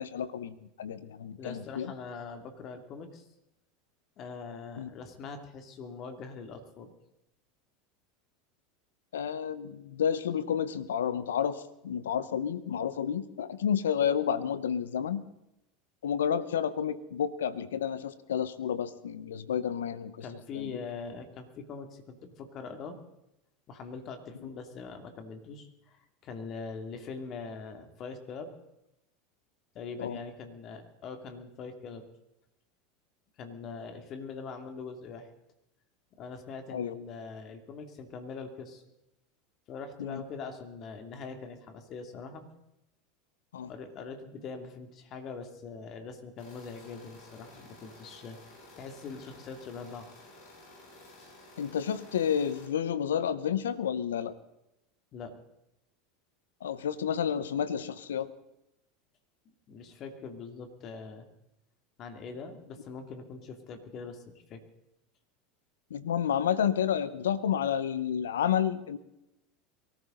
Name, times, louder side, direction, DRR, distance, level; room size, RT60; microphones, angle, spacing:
voice 1, 0.0-1.9 4.8-4.9 9.1-15.2 16.0-20.2 20.5-20.8 30.0-30.2 36.7-36.9 40.0-40.2 43.5-43.7 51.6-54.3 56.6-58.3 65.9-69.0, left 8 dB, 85° left, 15 dB, 0.9 m, -30 dB
voice 2, 1.4-3.3 4.2-6.9 20.2-23.0 23.7-28.5 29.7-32.1 33.4-35.3 36.2-38.8 39.7-42.5 43.6-48.4 48.8-50.1 55.1-55.4 59.7-61.3 62.0-64.2 64.5-64.6, left 5 dB, 45° left, 6 dB, 2.6 m, -42 dB
sound 1, 46.4-52.7, left 2 dB, 65° left, 6.4 m, -53 dB
23.0 x 14.0 x 3.9 m, 0.86 s
hypercardioid pair, 85°, 0 cm